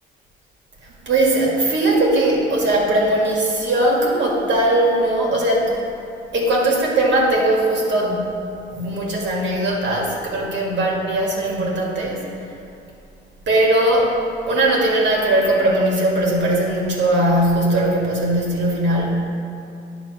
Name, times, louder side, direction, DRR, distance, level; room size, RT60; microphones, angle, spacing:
voice 1, 0.8-5.7 6.3-8.2 8.7-12.5 13.5-14.2 14.5-19.2, right 1 dB, 65° right, -2 dB, 1.9 m, -19 dB
9.4 x 3.7 x 6.3 m, 2.7 s
cardioid pair, 90°, 20 cm